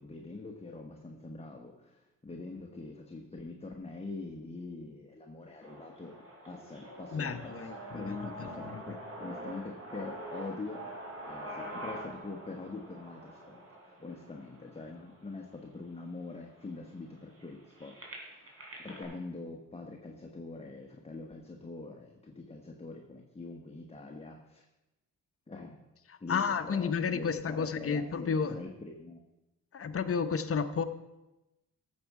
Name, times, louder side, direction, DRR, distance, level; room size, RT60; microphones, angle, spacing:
voice 1, 0.0-6.2 6.5-10.9 11.2-18.5 18.8-24.6 25.5-25.8 26.2-29.2, left 3 dB, 15° left, 1 dB, 1.2 m, -44 dB
sound 1, 5.6-15.6 16.2-16.3 16.6-19.0, right 1 dB, 40° right, 4.0 m, -45 dB
voice 2, 7.1-9.0 26.1-28.6 29.7-30.8, left 6 dB, 40° left, 9 dB, 0.8 m, -32 dB
13.5 x 7.4 x 4.8 m, 0.99 s
cardioid pair, 90°, 34 cm